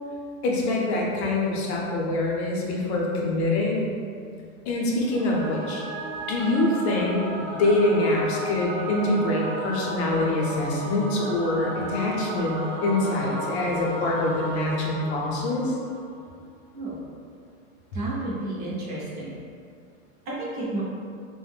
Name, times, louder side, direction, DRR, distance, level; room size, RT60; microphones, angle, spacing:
voice 1, 0.4-3.9 4.7-5.8 6.3-7.3 7.6-15.7, left 2 dB, 50° left, -2 dB, 0.7 m, -25 dB
Singing / Musical instrument, 5.1-16.3, right 1 dB, 75° right, 0.9 m, -34 dB
voice 2, 17.9-19.3 20.3-20.8, right 2 dB, 25° right, -6 dB, 0.5 m, -31 dB
2.4 x 2.1 x 3.3 m, 2.2 s
supercardioid pair, 145°, 40 cm